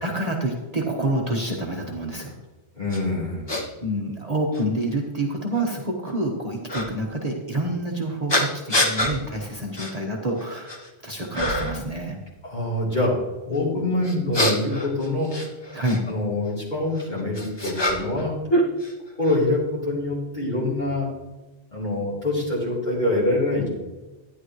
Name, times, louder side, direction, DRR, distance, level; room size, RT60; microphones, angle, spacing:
voice 1, 0.0-2.3 3.8-12.2 15.7-16.0, right 1 dB, 35° right, 0 dB, 1.2 m, -27 dB
voice 2, 2.8-3.4 12.4-13.1 13.5-15.3 16.1-18.3 19.2-21.1 21.7-23.7, left 2 dB, 40° left, -6 dB, 3.7 m, -25 dB
sound 1, 2.9-3.0 3.5-3.6 4.5-4.6 6.7-6.9 8.3-9.1 9.7-9.9 10.4-10.9 11.3-11.8 14.0-16.0 16.9-18.2 18.5-19.4, equal, 25° left, 1.1 m, -25 dB
12.0 x 10.0 x 3.1 m, 1.1 s
omnidirectional pair, 1.1 m